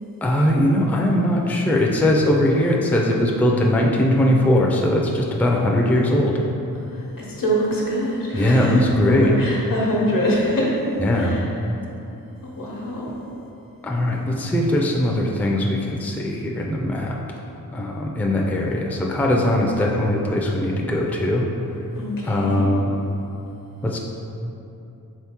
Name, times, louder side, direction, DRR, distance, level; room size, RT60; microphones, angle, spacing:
voice 1, 0.2-6.4 8.3-9.3 11.0-11.4 13.8-17.2 17.7-21.5 22.2-23.1 23.8-24.0, left 1 dB, 5° left, -1 dB, 0.4 m, -20 dB
voice 2, 6.8-10.8 11.1-11.5 12.4-13.2 21.9-22.8, equal, 75° left, -3 dB, 0.9 m, -24 dB
3.8 x 3.5 x 2.9 m, 2.8 s
cardioid pair, 60°, 34 cm